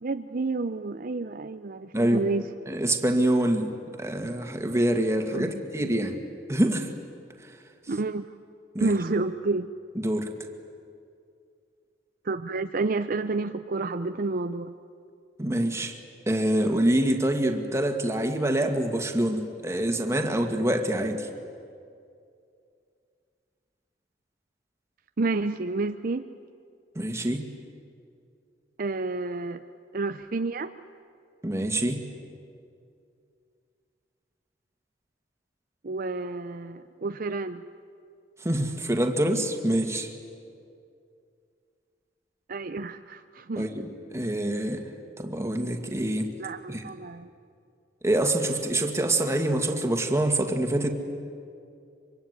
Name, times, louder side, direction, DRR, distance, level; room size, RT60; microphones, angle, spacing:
voice 1, 0.0-2.4 5.3-5.6 7.9-8.3 8.8-9.7 12.2-14.7 25.2-26.2 28.8-29.6 29.9-30.7 35.8-37.6 42.5-43.7 46.4-47.3, right 3 dB, 50° right, 9 dB, 0.6 m, -30 dB
voice 2, 1.9-2.3 2.7-6.2 6.5-6.9 8.7-9.0 10.0-10.3 15.4-16.0 16.3-21.3 27.0-27.5 31.4-32.1 38.4-40.1 43.6-44.9 45.2-46.4 46.7-46.8 48.0-50.9, right 1 dB, 15° right, 5 dB, 2.0 m, -26 dB
24.5 x 24.5 x 9.6 m, 2.4 s
head